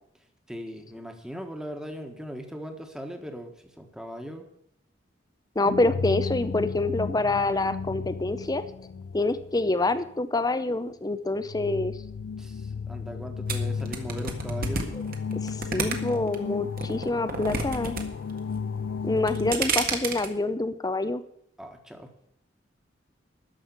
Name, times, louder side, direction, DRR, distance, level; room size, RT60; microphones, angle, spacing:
voice 1, 0.5-4.5 12.4-14.9 21.6-22.1, equal, 5° right, 4 dB, 1.6 m, -39 dB
sound 1, 5.6-10.1 11.4-19.5, left 5 dB, 80° left, 0.4 m, -34 dB
voice 2, 5.6-8.6 9.1-11.9 15.4-18.0 19.0-21.2, left 2 dB, 20° left, 12 dB, 0.6 m, -26 dB
sound 2, 13.5-16.4 16.8-18.0 18.3-18.8 19.2-20.3, right 4 dB, 50° right, 1.7 m, -29 dB
13.5 x 5.6 x 9.5 m, 0.70 s
head